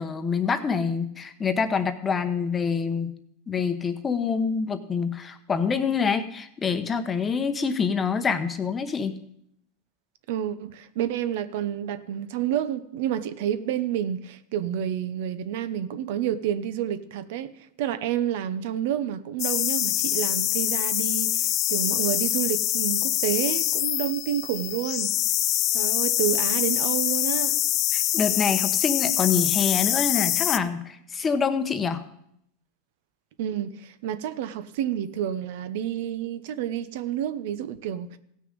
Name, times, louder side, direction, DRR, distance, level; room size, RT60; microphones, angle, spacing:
voice 1, 0.0-3.1 3.5-9.2 27.9-32.0, left 5 dB, 20° left, 0.9 m, -26 dB
voice 2, 10.3-25.1 25.7-27.6 33.4-38.2, right 10 dB, 65° right, 0.7 m, -29 dB
sound 1, 19.4-30.6, left 14 dB, 40° left, 0.4 m, -25 dB
16.0 x 6.4 x 5.2 m
supercardioid pair, 130°, 0 cm